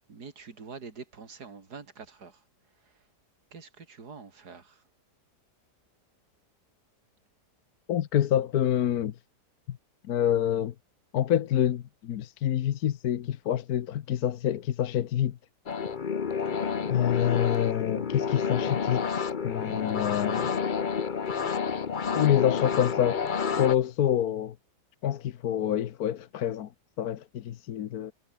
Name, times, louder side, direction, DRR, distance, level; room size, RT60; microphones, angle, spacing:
voice 1, 0.0-2.4 3.5-4.8 16.5-16.8, right 5 dB, 70° right, 3.3 m, -45 dB
voice 2, 7.9-9.1 9.7-9.8 10.1-10.7 11.1-15.4 16.9-20.5 22.1-23.2 23.5-24.5 25.0-26.7 27.0-28.1, left 10 dB, 65° left, 1.3 m, -27 dB
sound 1, 15.7-23.8, left 6 dB, 35° left, 0.9 m, -29 dB
omnidirectional pair, 1.8 m